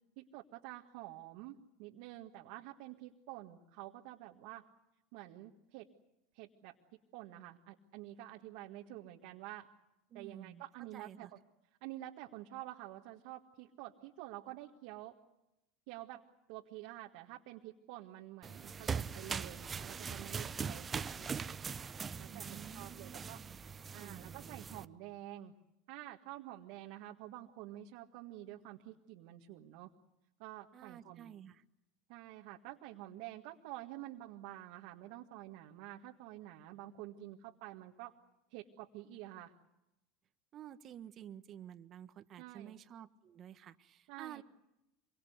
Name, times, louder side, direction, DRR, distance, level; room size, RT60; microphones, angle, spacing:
voice 1, 0.2-4.7 5.1-5.9 6.3-6.7 7.1-9.7 10.1-11.4 11.8-15.2 15.9-16.2 16.5-21.3 22.2-23.4 23.9-25.5 25.9-29.9 30.4-31.3 32.1-38.1 38.5-39.5 42.4-42.8 44.1-44.4, right 15 dB, 65° right, 1.8 m, -49 dB
voice 2, 10.1-11.3 22.2-23.6 24.0-24.7 30.7-31.6 40.5-44.4, right 10 dB, 45° right, 1.3 m, -52 dB
sound 1, 18.4-24.9, right 6 dB, 25° right, 0.9 m, -41 dB
26.5 x 24.0 x 8.1 m
hypercardioid pair, 90°, 0 cm